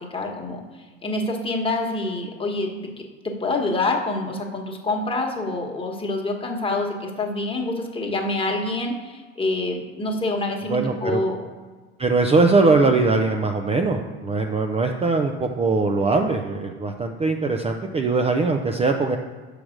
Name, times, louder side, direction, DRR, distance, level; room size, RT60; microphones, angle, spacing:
voice 1, 0.1-0.6 1.0-2.9 3.2-11.4 12.8-13.0, left 2 dB, 20° left, 1 dB, 1.4 m, -26 dB
voice 2, 10.7-11.2 12.0-19.2, right 3 dB, 20° right, 4 dB, 0.6 m, -21 dB
5.8 x 4.9 x 6.5 m, 1.4 s
supercardioid pair, 90°, 30 cm